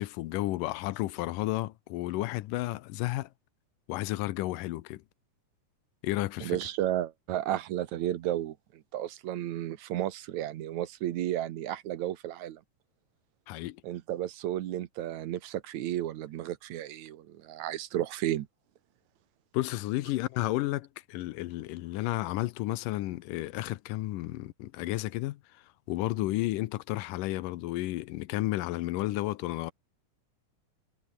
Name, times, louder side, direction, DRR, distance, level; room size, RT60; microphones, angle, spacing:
voice 1, 0.0-3.3 3.9-5.0 6.0-6.6 13.5-13.8 19.5-25.4 25.9-29.7, left 17 dB, 90° left, 2.4 m, -32 dB
voice 2, 6.4-12.6 13.8-18.5, right 12 dB, 70° right, 2.2 m, -33 dB
omnidirectional pair, 3.7 m